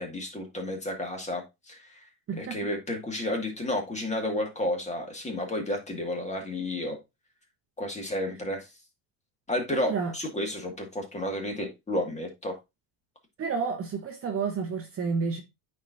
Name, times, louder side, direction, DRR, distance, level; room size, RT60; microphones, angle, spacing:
voice 1, 0.0-2.0 2.4-7.0 7.8-8.7 9.5-12.6, left 1 dB, 15° left, 2.0 m, -31 dB
voice 2, 2.3-2.6 9.7-10.1 13.4-15.4, right 5 dB, 30° right, 1.1 m, -30 dB
9.1 x 4.6 x 2.7 m
cardioid pair, 135°, 46 cm